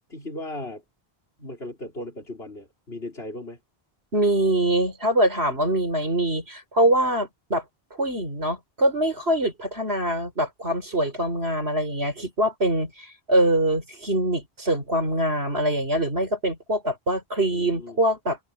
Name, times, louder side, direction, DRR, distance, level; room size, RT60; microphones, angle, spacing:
voice 1, 0.1-0.8 1.4-3.6 17.5-18.0, left 1 dB, 80° left, 5.1 m, -37 dB
voice 2, 4.1-7.6 7.9-18.4, right 1 dB, 85° right, 5.3 m, -24 dB
omnidirectional pair, 1.0 m